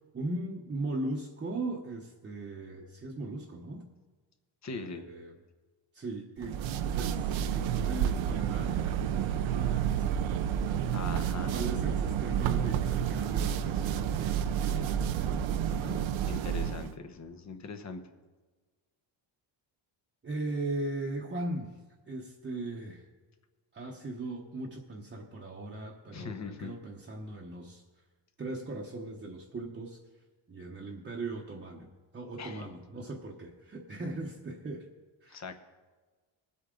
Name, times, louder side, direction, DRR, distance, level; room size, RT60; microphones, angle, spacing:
voice 1, 0.1-3.9 4.7-5.3 5.9-10.1 10.7-16.1 20.2-21.7 22.1-23.1 23.7-27.8 28.4-30.0 30.5-31.9 32.1-34.9 35.2-35.4, right 2 dB, 25° right, -2 dB, 1.0 m, -39 dB
voice 2, 4.6-5.1 10.9-11.6 16.3-18.0 26.1-26.8 32.4-32.7 35.3-35.6, left 4 dB, 35° left, 8 dB, 1.0 m, -41 dB
sound 1, 6.4-16.9, right 9 dB, 80° right, 0.8 m, -30 dB
20.0 x 8.3 x 3.8 m, 1.3 s
cardioid pair, 145°, 46 cm